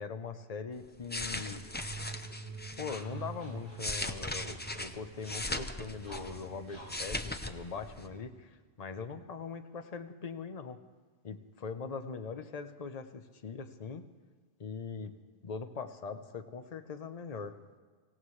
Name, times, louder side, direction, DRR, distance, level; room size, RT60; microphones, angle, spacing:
voice 1, 0.0-1.6 2.8-10.8 11.2-14.1 14.6-15.1 15.4-17.6, left 5 dB, 40° left, 8 dB, 0.8 m, -41 dB
sound 1, 0.9-3.0 3.6-6.5 6.8-7.5 7.8-8.0, left 1 dB, 15° left, 0.5 m, -38 dB
sound 2, 1.4-8.2, right 5 dB, 65° right, 1.3 m, -48 dB
sound 3, 2.5-8.5, left 1 dB, 25° right, 4.4 m, -56 dB
25.5 x 16.5 x 3.2 m, 1.5 s
omnidirectional pair, 1.1 m